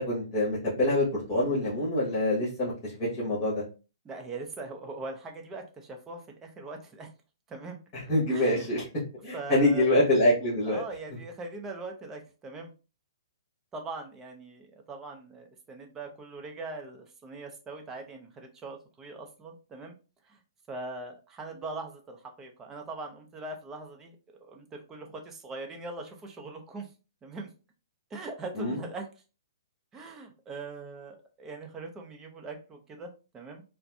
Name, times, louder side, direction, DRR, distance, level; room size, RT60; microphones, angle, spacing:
voice 1, 0.0-3.6 7.9-8.8 9.2-10.8 28.6-28.8, left 1 dB, 25° left, -6 dB, 1.8 m, -25 dB
voice 2, 4.0-7.1 7.5-7.8 8.3-8.7 9.3-9.9 10.7-12.7 13.7-19.9 20.3-20.4 20.7-24.2 24.4-26.9 27.2-27.5 28.1-29.1 29.9-33.6, right 3 dB, 15° right, 3 dB, 0.7 m, -41 dB
4.1 x 2.2 x 2.7 m, 0.33 s
hypercardioid pair, 125°, 2 cm